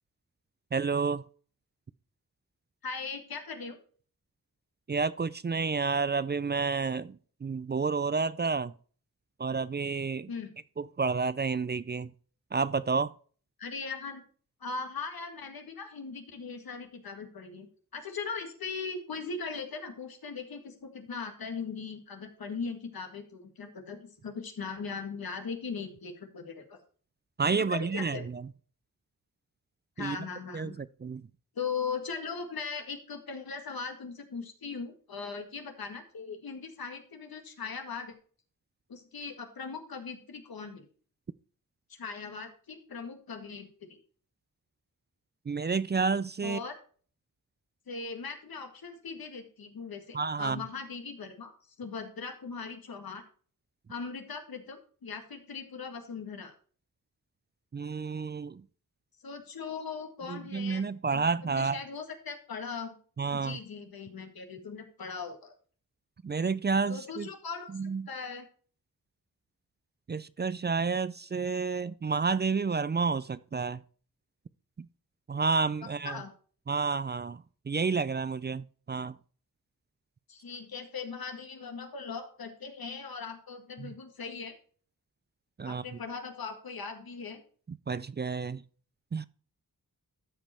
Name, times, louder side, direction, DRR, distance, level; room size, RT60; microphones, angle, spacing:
voice 1, 0.7-1.2 4.9-8.7 9.4-10.3 10.8-12.1 12.5-13.1 27.4-28.4 30.0-30.2 30.5-31.3 45.5-46.6 50.1-50.6 57.7-58.6 60.3-61.8 63.2-63.6 66.2-67.3 67.7-68.1 70.1-73.8 75.3-76.2 76.7-79.1 83.8-83.9 85.6-86.0 87.7-88.6 89.1-89.3, right 4 dB, 30° right, 0.4 m, -30 dB
voice 2, 2.8-3.8 10.3-10.5 13.6-14.2 14.6-26.8 27.5-28.2 30.0-30.8 31.6-38.1 38.9-40.9 41.9-44.0 46.4-46.7 47.9-51.5 51.8-53.2 53.9-56.5 59.2-62.9 63.3-65.5 66.9-67.7 68.1-68.5 76.0-76.3 80.3-84.5 85.7-87.4, left 5 dB, 80° left, 1.9 m, -39 dB
13.5 x 5.2 x 4.3 m
wide cardioid pair, 75°, 35 cm